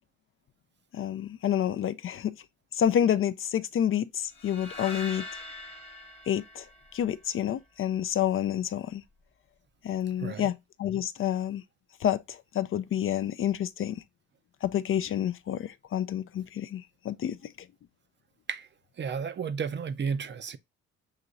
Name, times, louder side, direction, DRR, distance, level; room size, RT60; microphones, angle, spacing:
voice 1, 0.9-2.3 2.7-5.3 6.3-6.6 6.9-9.0 9.8-11.6 12.0-14.0 14.6-17.5, left 10 dB, 45° left, 0.4 m, -29 dB
sound 1, 4.4-7.5, left 2 dB, 20° left, 1.0 m, -43 dB
voice 2, 10.2-10.5 18.5-18.7 19.0-20.6, right 6 dB, 40° right, 0.5 m, -32 dB
6.6 x 2.9 x 2.5 m
cardioid pair, 90°, 30 cm